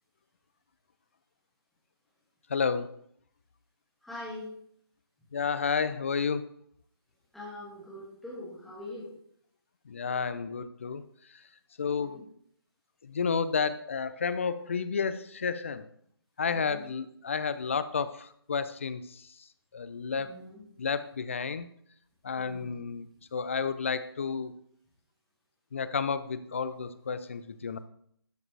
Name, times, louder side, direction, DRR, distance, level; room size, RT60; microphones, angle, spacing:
voice 1, 2.5-2.9 5.3-6.4 9.9-11.0 11.8-12.2 13.0-15.9 16.4-19.3 19.7-20.3 20.8-21.7 22.2-24.5 25.7-27.8, left 5 dB, 30° left, 14 dB, 0.4 m, -31 dB
voice 2, 4.0-4.5 7.3-9.1 12.0-12.2 16.5-16.9 20.2-20.6 22.4-22.7, left 1 dB, ahead, -8 dB, 1.6 m, -43 dB
12.0 x 4.8 x 3.3 m, 0.66 s
figure-of-eight pair, 165°, 13 cm